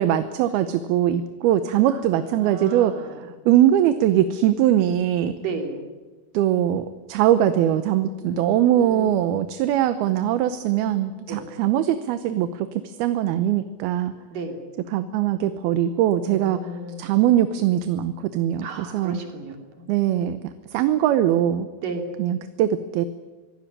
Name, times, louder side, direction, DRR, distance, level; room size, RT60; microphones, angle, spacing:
voice 1, 0.0-2.9 3.2-5.4 6.3-14.1 14.9-16.6 17.0-19.2 19.9-20.4 20.7-21.7 22.2-23.1, right 11 dB, 75° right, 11 dB, 2.7 m, -21 dB
voice 2, 1.9-3.2 5.4-5.8 8.2-9.3 11.3-11.4 14.3-14.6 16.3-17.1 18.6-19.9 21.8-22.0, right 3 dB, 60° right, 4 dB, 4.4 m, -34 dB
23.5 x 17.0 x 9.9 m, 1.3 s
omnidirectional pair, 4.6 m